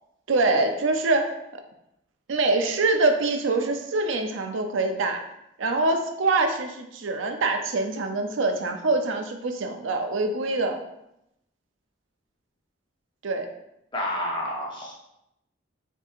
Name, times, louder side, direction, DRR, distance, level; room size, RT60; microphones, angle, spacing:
voice 1, 0.3-1.3 2.3-5.2 5.6-10.8 13.2-13.5, right 3 dB, 80° right, 5 dB, 0.5 m, -24 dB
voice 2, 13.9-14.9, left 1 dB, 25° left, -2 dB, 0.8 m, -29 dB
6.2 x 2.8 x 2.5 m, 0.83 s
head